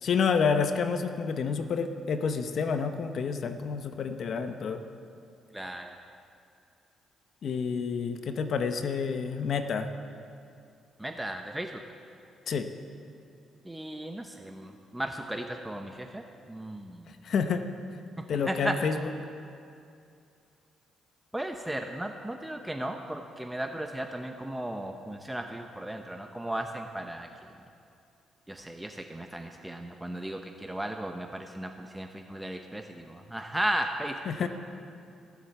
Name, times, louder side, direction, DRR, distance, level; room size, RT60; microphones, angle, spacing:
voice 1, 0.0-4.8 7.4-9.9 12.5-12.7 17.1-17.6 18.3-19.0 34.3-34.5, left 5 dB, 60° left, 8 dB, 0.8 m, -29 dB
voice 2, 5.5-6.0 11.0-11.8 13.6-17.1 18.5-18.8 21.3-27.5 28.5-34.2, right 1 dB, 10° right, 4 dB, 0.8 m, -35 dB
16.0 x 7.3 x 8.0 m, 2.5 s
cardioid pair, 90°, 0 cm